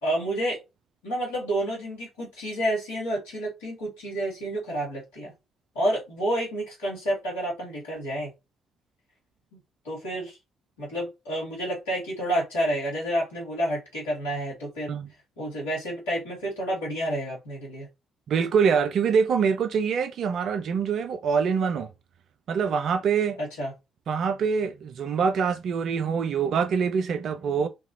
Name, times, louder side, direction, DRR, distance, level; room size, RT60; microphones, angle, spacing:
voice 1, 0.0-0.6 1.0-5.3 5.8-8.3 9.5-9.6 9.8-10.4 10.8-14.9 15.4-17.9 23.4-23.7, right 1 dB, 85° left, 2.0 m, -29 dB
voice 2, 18.3-21.9 22.5-23.4 24.1-27.7, right 6 dB, 60° right, 0.5 m, -24 dB
4.6 x 2.5 x 2.8 m
hypercardioid pair, 45°, 0 cm